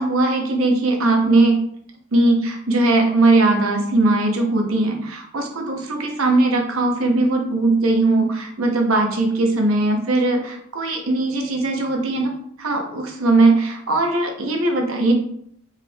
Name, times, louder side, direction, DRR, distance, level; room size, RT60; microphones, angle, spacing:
voice 1, 0.0-1.6 2.1-12.3 12.6-15.1, right 2 dB, 85° right, 2 dB, 0.8 m, -19 dB
4.3 x 3.4 x 2.3 m, 0.67 s
head